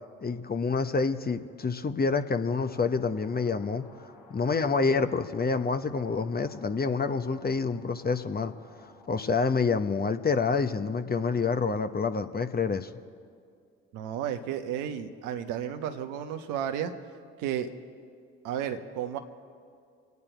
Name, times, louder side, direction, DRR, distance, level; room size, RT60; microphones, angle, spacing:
voice 1, 0.2-3.8 4.3-8.5 9.1-12.9, left 4 dB, 30° left, 9 dB, 1.0 m, -27 dB
sound 1, 2.5-9.7, left 3 dB, 85° left, 1.5 m, -55 dB
voice 2, 13.9-16.9 17.4-17.7 18.4-19.2, right 9 dB, 75° right, 7 dB, 1.1 m, -32 dB
26.5 x 9.5 x 4.5 m, 2.3 s
hypercardioid pair, 45°, 32 cm